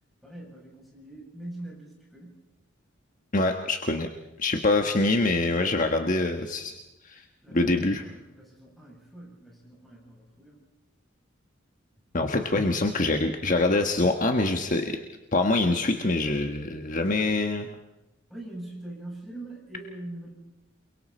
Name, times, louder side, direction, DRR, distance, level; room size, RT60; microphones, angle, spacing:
voice 1, 0.2-2.4 7.4-10.6 18.3-20.3, right 1 dB, ahead, -3 dB, 7.9 m, -43 dB
voice 2, 3.3-4.1 4.4-6.7 7.0-7.2 7.5-8.0 12.1-15.0 15.3-17.7, left 2 dB, 40° left, 4 dB, 1.3 m, -24 dB
28.5 x 23.0 x 4.4 m, 0.99 s
head